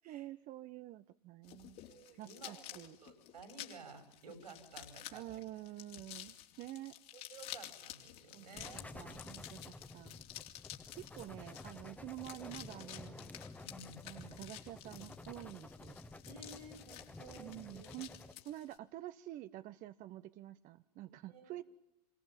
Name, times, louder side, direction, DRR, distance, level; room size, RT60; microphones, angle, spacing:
voice 1, 0.0-1.8 2.2-3.0 5.1-6.9 8.3-8.7 8.9-10.1 10.9-13.3 14.0-16.0 17.4-18.1 18.4-21.6, right 15 dB, 40° right, 11 dB, 1.0 m, -48 dB
sound 1, 1.4-18.8, left 13 dB, 50° left, 3.3 m, -52 dB
voice 2, 1.9-5.2 7.1-8.9 13.6-14.1 16.3-17.9 21.3-21.6, right 3 dB, 80° right, 8 dB, 6.4 m, -54 dB
sound 2, 8.6-18.3, left 2 dB, 5° left, 1.4 m, -52 dB
27.0 x 20.5 x 8.9 m, 0.93 s
hypercardioid pair, 90°, 20 cm